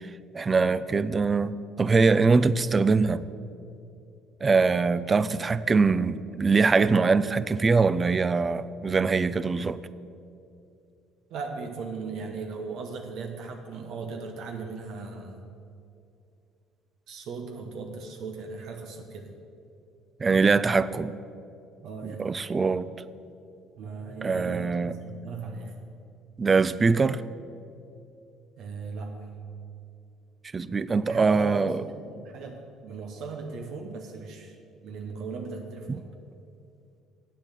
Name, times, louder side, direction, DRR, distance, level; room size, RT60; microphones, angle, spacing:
voice 1, 0.3-3.2 4.4-9.8 20.2-21.1 22.2-22.9 24.2-25.0 26.4-27.2 30.5-31.7, right 4 dB, 30° right, 16 dB, 0.4 m, -23 dB
voice 2, 11.3-15.5 17.1-19.4 21.8-22.5 23.8-25.9 28.6-29.5 31.0-34.6 34.8-36.1, right 4 dB, 65° right, 4 dB, 0.9 m, -38 dB
8.3 x 7.2 x 7.4 m, 2.5 s
supercardioid pair, 70°, 0 cm